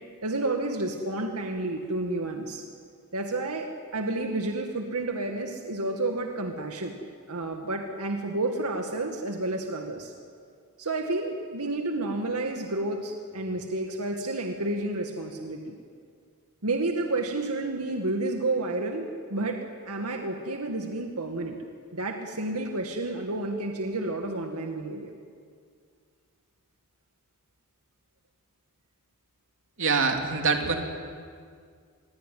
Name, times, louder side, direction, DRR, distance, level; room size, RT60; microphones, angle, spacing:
voice 1, 0.2-2.6 3.1-7.0 7.3-10.1 10.8-15.7 16.6-21.6 21.9-25.1, right 2 dB, 85° right, 3 dB, 2.1 m, -30 dB
voice 2, 29.8-30.8, right 4 dB, 60° right, 3 dB, 3.0 m, -24 dB
26.5 x 22.5 x 9.5 m, 2.1 s
head